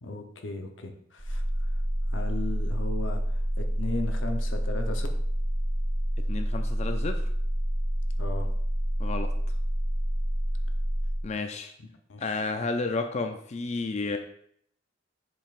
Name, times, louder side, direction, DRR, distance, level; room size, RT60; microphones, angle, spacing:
voice 1, 0.0-5.1 8.2-8.5 11.8-12.4, left 3 dB, 85° left, 5 dB, 0.8 m, -37 dB
sound 1, 1.2-11.2, equal, 25° right, 0.9 m, -28 dB
voice 2, 6.3-7.2 9.0-9.3 11.2-11.7 12.2-14.2, left 3 dB, 35° left, 6 dB, 0.4 m, -31 dB
7.3 x 5.3 x 2.5 m, 0.68 s
head